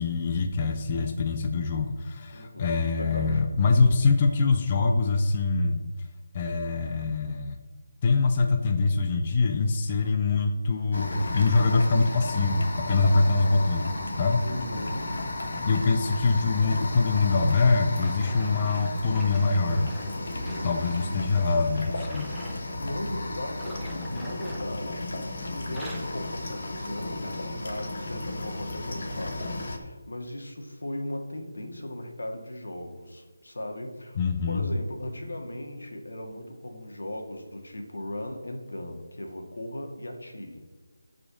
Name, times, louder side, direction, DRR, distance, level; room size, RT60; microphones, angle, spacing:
voice 1, 0.0-5.8 6.3-7.6 8.0-14.5 15.6-19.9 20.6-22.3 34.2-34.6, left 3 dB, 20° left, 4 dB, 0.5 m, -24 dB
voice 2, 2.3-3.4 14.4-15.3 20.2-20.7 22.5-34.2 34.5-40.7, left 1 dB, 85° left, 3 dB, 2.0 m, -38 dB
sound 1, 10.9-29.8, left 2 dB, 45° left, 1.3 m, -34 dB
sound 2, 18.0-22.6 23.5-25.3 25.6-26.2 26.8-27.0 27.7-27.8, right 1 dB, ahead, 0.8 m, -45 dB
8.6 x 5.0 x 6.3 m, 1.4 s
figure-of-eight pair, 180°, 0 cm